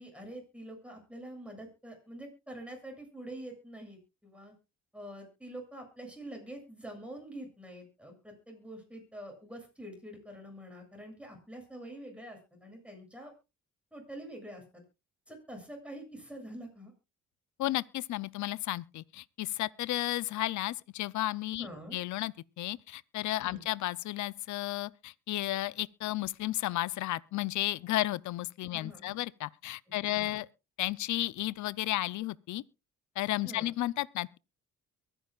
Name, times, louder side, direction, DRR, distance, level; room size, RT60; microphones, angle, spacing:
voice 1, 0.0-4.5 4.9-13.3 13.9-14.6 15.3-16.9 21.6-22.0 23.4-23.6 28.7-29.2 30.1-30.4 33.4-33.7, right 1 dB, 5° right, 7.6 m, -46 dB
voice 2, 17.6-30.5 30.8-32.6 33.2-34.4, left 16 dB, 70° left, 0.6 m, -33 dB
23.0 x 10.0 x 2.4 m
cardioid pair, 90°, 30 cm